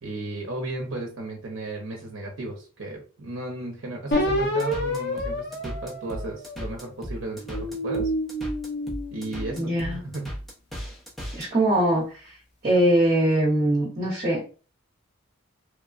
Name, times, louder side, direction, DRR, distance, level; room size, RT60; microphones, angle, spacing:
voice 1, 0.0-8.1 9.1-10.3, right 2 dB, 65° right, 1 dB, 0.7 m, -34 dB
sound 1, 4.1-6.8 7.4-9.9, left 1 dB, 50° left, 0.7 m, -29 dB
sound 2, 4.3-11.5, equal, ahead, 0.7 m, -36 dB
voice 2, 9.6-10.0 11.3-12.3 12.6-14.5, right 1 dB, 35° right, -5 dB, 0.9 m, -22 dB
3.1 x 2.1 x 2.4 m, 0.37 s
head